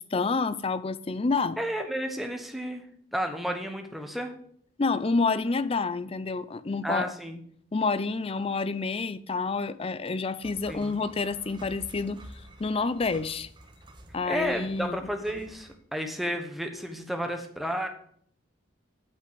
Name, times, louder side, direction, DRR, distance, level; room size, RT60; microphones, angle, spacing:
voice 1, 0.0-1.6 4.8-7.1 7.7-12.2 12.6-13.5 14.1-15.1, left 4 dB, 30° left, 0.5 m, -28 dB
voice 2, 1.6-2.8 3.1-4.3 6.8-7.4 10.7-11.0 14.2-17.9, equal, ahead, 1.1 m, -32 dB
sound 1, 10.4-15.8, right 1 dB, 25° right, 1.2 m, -50 dB
8.3 x 6.0 x 7.9 m
head